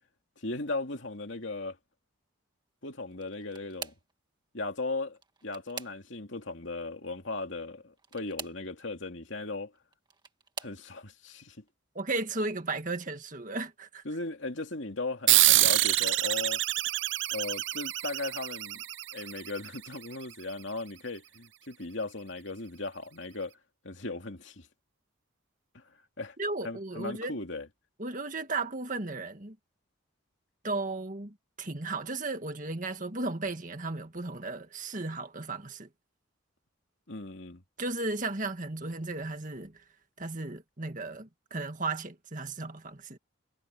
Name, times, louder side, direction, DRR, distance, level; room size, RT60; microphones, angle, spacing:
voice 1, 0.4-1.8 2.8-3.9 4.5-9.7 10.6-11.6 14.0-16.6 17.3-18.8 19.1-23.5 23.8-24.7 25.7-25.8 26.2-26.3 26.6-27.7 37.1-37.6, left 2 dB, 60° left, 2.7 m, -37 dB
sound 1, 3.1-4.2 5.1-6.4 8.0-8.7 9.7-10.8 11.6-11.9 12.3-12.5 13.8-13.9, right 5 dB, 20° right, 1.9 m, -45 dB
voice 2, 12.0-14.0 26.4-27.4 28.0-29.6 30.6-35.9 37.8-39.8 40.2-43.2, right 3 dB, 40° right, 1.9 m, -35 dB
sound 2, 15.3-20.2, right 16 dB, 60° right, 0.6 m, -26 dB
head